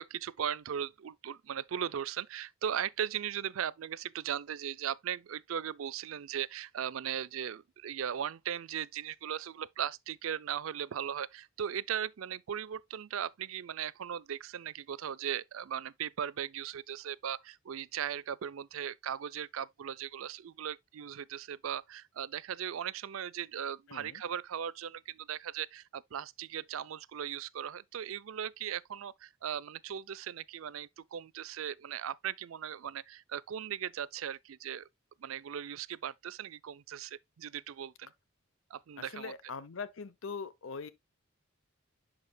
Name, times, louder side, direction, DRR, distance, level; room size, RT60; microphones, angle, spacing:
voice 1, 0.0-34.9 35.2-38.1 38.7-39.3, right 9 dB, 80° right, 0.4 m, -38 dB
voice 2, 23.9-24.2 39.0-40.9, left 5 dB, 70° left, 0.7 m, -42 dB
11.0 x 5.0 x 2.2 m
head